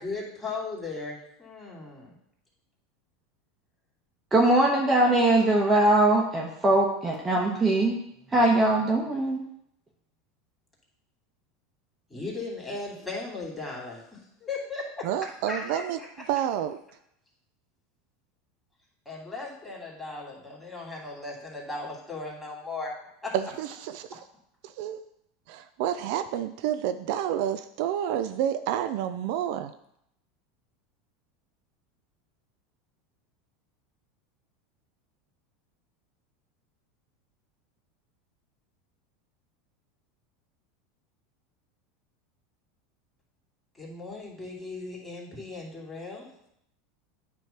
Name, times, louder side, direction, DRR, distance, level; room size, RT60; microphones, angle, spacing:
voice 1, 0.0-2.1 12.1-15.1 15.5-16.1 19.0-22.9 23.2-23.3 43.7-46.3, left 3 dB, 10° left, -4 dB, 2.9 m, -37 dB
voice 2, 4.3-8.0 8.3-9.4, right 2 dB, 20° right, -2 dB, 1.2 m, -21 dB
voice 3, 15.0-16.0 16.3-16.8 23.3-24.2 24.6-25.0 25.5-29.7, right 10 dB, 65° right, 9 dB, 0.4 m, -29 dB
9.2 x 3.1 x 5.8 m, 0.75 s
supercardioid pair, 110°, 0 cm